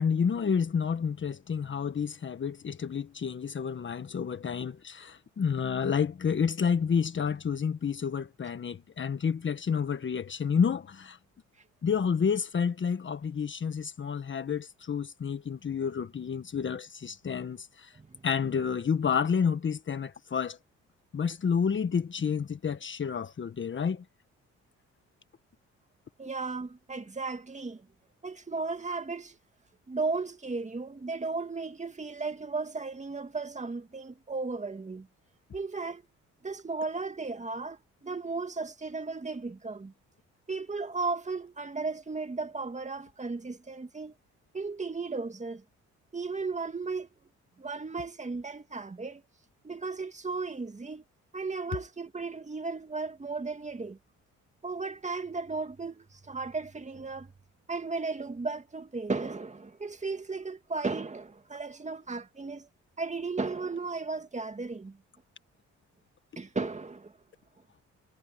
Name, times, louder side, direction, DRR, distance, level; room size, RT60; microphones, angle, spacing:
voice 1, 0.0-11.2 11.8-17.9 18.2-20.6 21.1-24.0, left 6 dB, 40° left, 1.4 m, -29 dB
voice 2, 26.2-27.9 28.2-29.4 29.9-35.1 35.5-36.0 36.4-39.9 40.5-44.1 44.5-45.6 46.1-47.1 47.6-49.2 49.6-51.0 51.3-54.0 54.6-57.3 57.7-62.7 63.0-65.0 66.4-67.1, right 4 dB, 25° right, 2.3 m, -35 dB
cardioid pair, 90°, 30 cm